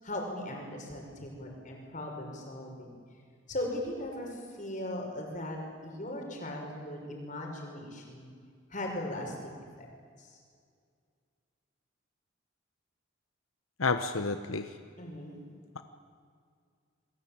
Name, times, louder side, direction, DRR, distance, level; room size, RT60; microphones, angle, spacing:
voice 1, 0.0-2.9 3.5-8.3 8.7-9.9 10.2-10.4 15.0-15.4, left 1 dB, 40° left, 1 dB, 5.7 m, -38 dB
voice 2, 13.8-14.7 15.7-15.8, left 4 dB, 90° left, 9 dB, 1.2 m, -30 dB
29.0 x 22.0 x 8.9 m, 2.1 s
head